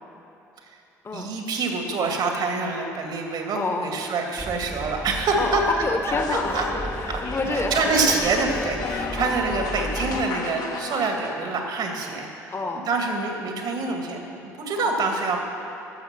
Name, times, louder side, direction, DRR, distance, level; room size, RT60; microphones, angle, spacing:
voice 1, 1.1-5.6 6.3-6.6 7.1-7.2 7.5-12.3 12.8-15.4, right 4 dB, 60° right, 3 dB, 1.8 m, -26 dB
voice 2, 3.5-3.9 5.4-8.1 9.2-9.3 12.5-12.9 14.7-14.9, left 3 dB, 30° left, 4 dB, 1.2 m, -28 dB
sound 1, 4.4-10.3, right 1 dB, 5° right, 0.4 m, -36 dB
sound 2, 6.1-11.5, left 4 dB, 50° left, 1.0 m, -32 dB
13.0 x 6.8 x 5.9 m, 2.8 s
hypercardioid pair, 55°, 8 cm